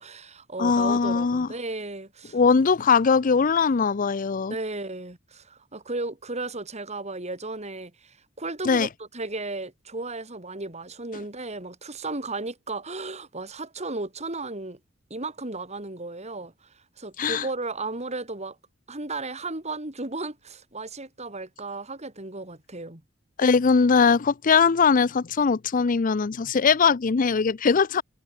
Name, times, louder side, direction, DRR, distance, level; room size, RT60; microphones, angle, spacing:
voice 1, 0.0-2.4 4.5-14.8 15.1-18.6 18.9-23.0, right 2 dB, 35° right, 3.6 m, -35 dB
voice 2, 0.6-1.5 2.3-4.5 8.6-8.9 17.2-17.5 23.4-28.0, left 5 dB, 40° left, 0.5 m, -21 dB
head